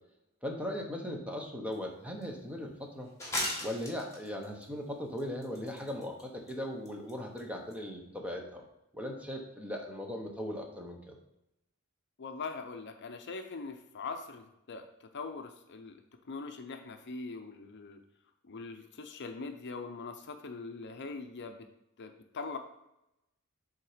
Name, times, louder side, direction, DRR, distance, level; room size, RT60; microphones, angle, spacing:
voice 1, 0.4-3.1 3.6-8.6 8.9-11.2, left 1 dB, 5° right, 1 dB, 0.9 m, -38 dB
sound 1, 1.7-1.8 2.2-2.3 3.2-4.6 5.2-6.2 6.5-6.6 6.8-7.1 7.4-7.5 7.7-7.8, left 1 dB, 15° left, 1.6 m, -36 dB
voice 2, 12.2-18.0 18.4-21.7 22.0-22.6, left 4 dB, 50° left, 6 dB, 0.6 m, -42 dB
7.4 x 3.9 x 5.0 m, 0.87 s
head